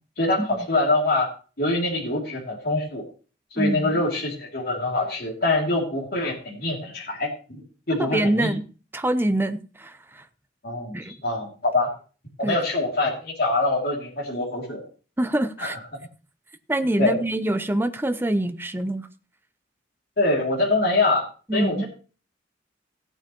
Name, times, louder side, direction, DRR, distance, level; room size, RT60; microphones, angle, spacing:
voice 1, 0.2-1.3 1.6-3.0 3.5-8.5 10.6-11.9 12.4-14.8 15.6-15.8 17.0-17.2 20.2-21.2 21.5-21.8, left 2 dB, 55° left, -3 dB, 2.8 m, -24 dB
voice 2, 3.6-4.0 8.0-8.6 8.9-10.2 10.9-11.1 12.4-12.6 15.2-15.8 16.7-19.1 21.5-21.8, right 1 dB, 10° right, 9 dB, 0.7 m, -25 dB
17.0 x 9.0 x 3.0 m, 0.37 s
head